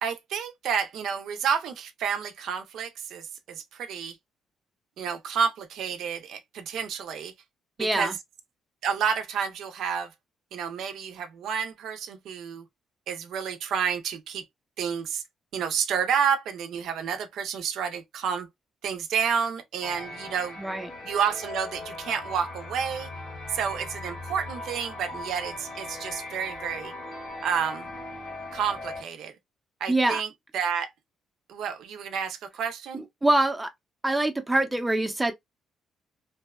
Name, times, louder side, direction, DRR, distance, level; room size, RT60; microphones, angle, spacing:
voice 1, 0.0-4.2 5.0-7.3 7.8-8.2 8.8-10.1 10.5-12.7 13.1-14.4 14.8-15.2 15.5-18.5 18.8-20.6 21.0-23.1 23.5-26.9 27.4-27.9 28.5-29.3 29.8-30.9 31.5-33.0, right 7 dB, 80° right, 0.5 m, -30 dB
voice 2, 7.8-8.1 20.6-20.9 29.9-30.2 33.2-33.7 34.0-35.3, right 2 dB, 15° right, 0.6 m, -24 dB
sound 1, 19.8-29.0, left 2 dB, 80° left, 1.2 m, -39 dB
2.6 x 2.1 x 2.3 m
cardioid pair, 90°, 0 cm